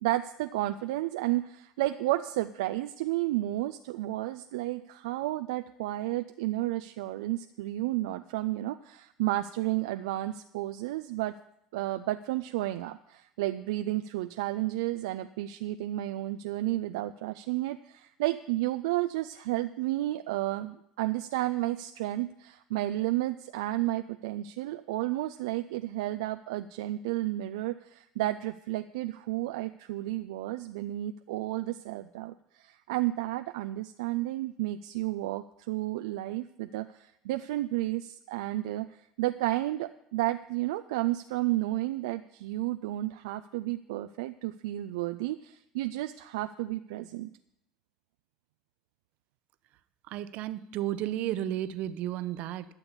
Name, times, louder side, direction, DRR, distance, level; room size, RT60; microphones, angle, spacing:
voice 1, 0.0-11.3 11.7-47.3, right 16 dB, 75° right, 9 dB, 0.4 m, -32 dB
voice 2, 50.1-52.7, right 12 dB, 60° right, 13 dB, 0.7 m, -33 dB
12.5 x 7.0 x 7.0 m, 0.79 s
hypercardioid pair, 70°, 3 cm